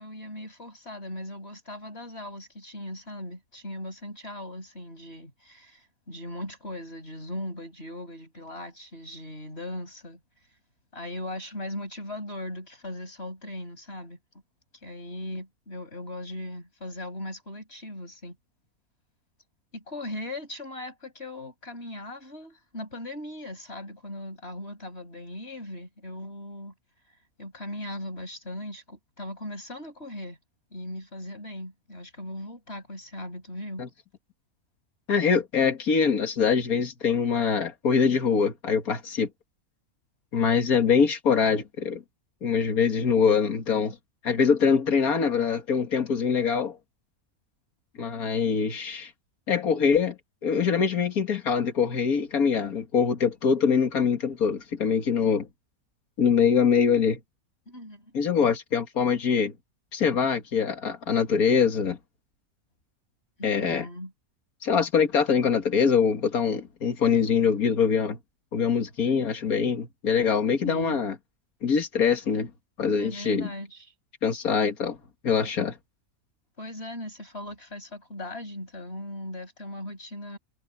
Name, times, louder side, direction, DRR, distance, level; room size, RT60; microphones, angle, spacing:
voice 1, 0.0-10.2 10.9-14.2 14.8-18.4 19.7-26.7 27.4-30.4 30.7-33.8 57.7-58.1 63.4-64.1 70.6-71.0 73.0-73.9 76.6-80.4, left 1 dB, 45° left, 6.7 m, -38 dB
voice 2, 35.1-39.3 40.3-42.0 42.4-44.0 44.2-46.8 48.0-49.1 49.5-50.2 50.4-55.5 56.2-57.2 58.1-59.5 59.9-62.0 63.4-63.9 64.6-68.2 68.5-71.1 71.6-72.5 72.8-73.5 74.2-75.0 75.2-75.7, left 6 dB, 85° left, 2.3 m, -23 dB
omnidirectional pair, 1.5 m